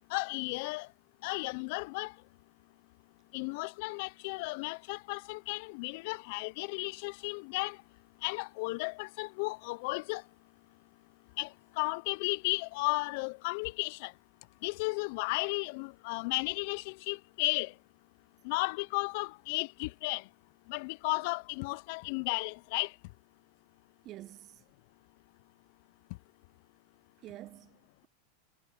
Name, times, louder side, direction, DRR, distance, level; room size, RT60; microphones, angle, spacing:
voice 1, 0.1-0.9 1.2-2.1 3.3-7.8 8.2-10.2 11.4-11.5 11.8-14.1 14.6-17.7 18.4-20.2 20.7-22.9, left 27 dB, 60° left, 0.7 m, -34 dB
voice 2, 24.0-24.6 27.2-28.1, right 15 dB, 40° right, 1.2 m, -48 dB
hypercardioid pair, 105°, 0 cm